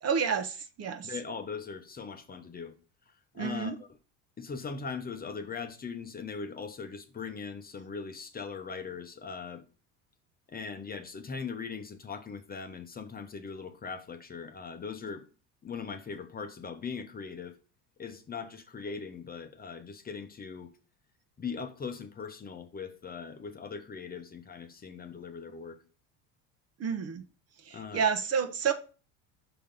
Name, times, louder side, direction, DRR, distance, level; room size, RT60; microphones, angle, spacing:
voice 1, 0.0-1.1 3.4-3.8 26.8-27.2 27.6-28.7, right 6 dB, 40° right, 1.0 m, -30 dB
voice 2, 1.0-2.8 3.3-3.9 4.4-9.6 10.5-15.2 15.6-17.6 18.0-20.7 21.4-25.8 27.7-28.0, left 5 dB, 25° left, 0.8 m, -40 dB
5.9 x 3.7 x 5.4 m
supercardioid pair, 85°, 37 cm